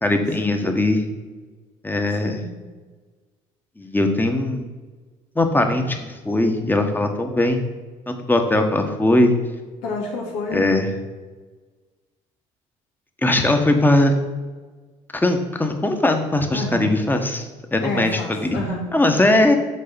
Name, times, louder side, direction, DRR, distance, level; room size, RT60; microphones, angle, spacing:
voice 1, 0.0-1.0 1.8-2.4 3.8-4.6 5.3-7.7 8.1-9.3 10.5-10.9 13.2-14.1 15.1-18.6 18.9-19.6, left 1 dB, 10° left, 5 dB, 1.3 m, -20 dB
voice 2, 2.2-2.5 9.8-10.7 16.5-17.0 17.8-18.9 19.2-19.3, left 2 dB, 85° left, -2 dB, 2.5 m, -29 dB
6.6 x 4.9 x 6.9 m, 1.3 s
supercardioid pair, 75°, 15 cm